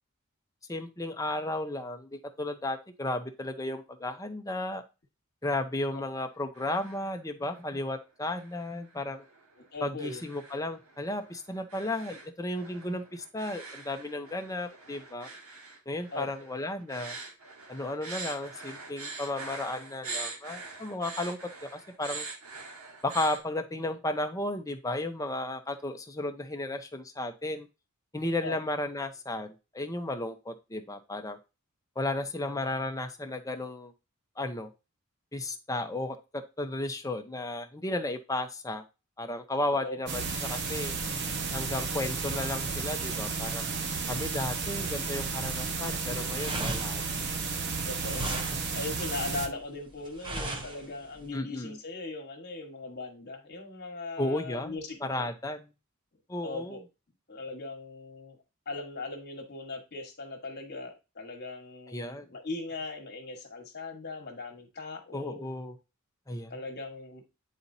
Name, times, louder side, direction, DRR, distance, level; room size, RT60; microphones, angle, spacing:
voice 1, 0.7-4.8 5.4-9.3 9.8-15.3 15.9-17.2 17.7-22.3 23.0-27.7 28.1-31.4 32.0-33.9 34.4-34.7 35.3-38.8 39.2-41.0 41.5-43.7 44.1-47.0 51.3-51.8 54.2-55.7 56.3-56.8 61.9-62.3 65.1-65.8 66.3-66.6, left 1 dB, 15° left, 6 dB, 0.7 m, -34 dB
sound 1, 6.3-7.1 7.4-7.9 8.3-23.4, right 3 dB, 80° right, 1.6 m, -44 dB
voice 2, 9.7-10.3 16.1-16.3 28.4-28.6 39.8-40.0 47.9-48.4 48.7-55.3 56.4-56.8 57.3-58.4 58.6-65.4 66.5-67.2, left 3 dB, 50° left, 2 dB, 1.4 m, -39 dB
sound 2, 40.1-49.5, right 4 dB, 55° right, 1.0 m, -33 dB
sound 3, 46.3-51.3, right 1 dB, 20° right, 1.0 m, -38 dB
9.5 x 4.1 x 2.7 m, 0.28 s
head